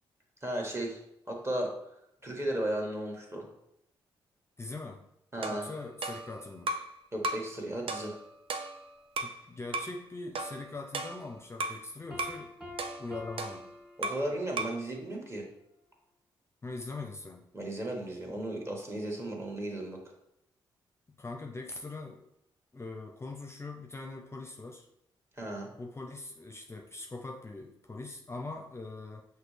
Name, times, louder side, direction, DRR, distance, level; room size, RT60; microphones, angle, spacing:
voice 1, 0.4-1.0 1.3-1.7 2.2-3.5 5.3-5.7 7.1-8.1 14.0-15.5 17.5-20.0 25.4-25.7, right 1 dB, 25° right, 0 dB, 1.5 m, -35 dB
voice 2, 4.6-5.1 5.5-6.7 9.2-12.5 13.0-13.7 16.6-17.5 21.2-22.3 22.7-24.9 25.8-29.3, left 3 dB, 25° left, 3 dB, 0.6 m, -42 dB
sound 1, 5.4-6.9 7.2-7.5 7.9-9.4 9.7-10.0 10.3-11.8 12.2-12.4 12.8-14.3 14.6-14.8, right 2 dB, 60° right, 0.5 m, -36 dB
Piano, 12.1-14.7, left 2 dB, 10° right, 1.8 m, -47 dB
5.8 x 2.8 x 3.3 m, 0.79 s
supercardioid pair, 50°, 10 cm